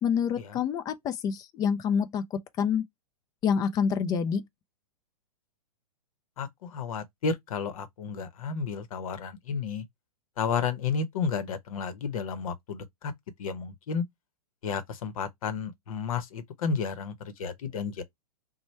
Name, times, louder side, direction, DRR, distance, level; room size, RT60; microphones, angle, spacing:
voice 1, 0.0-2.8 3.4-4.4, left 7 dB, 20° left, 0.4 m, -27 dB
voice 2, 6.4-9.8 10.4-13.1 13.4-14.0 14.6-18.0, left 5 dB, 60° left, 0.9 m, -32 dB
3.0 x 2.2 x 4.2 m
hypercardioid pair, 120°, 20 cm